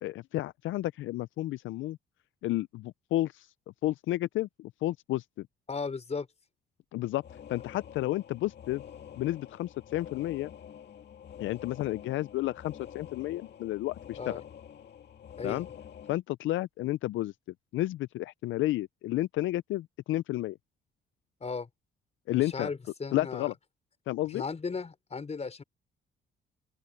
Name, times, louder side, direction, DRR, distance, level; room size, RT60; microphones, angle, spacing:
voice 1, 0.0-2.0 2.4-3.5 3.8-5.5 6.9-7.2 7.5-8.8 9.2-10.5 11.4-14.4 15.4-15.7 16.1-17.3 17.7-20.6 22.3-22.7 23.1-23.5 24.1-24.4, left 16 dB, 75° left, 0.4 m, -31 dB
voice 2, 5.7-6.3 14.2-14.4 15.4-15.6 21.4-21.7 22.3-23.5 24.3-25.6, left 4 dB, 35° left, 5.2 m, -36 dB
sound 1, 7.2-16.1, left 8 dB, 60° left, 2.2 m, -48 dB
open air
cardioid pair, 90°, 20 cm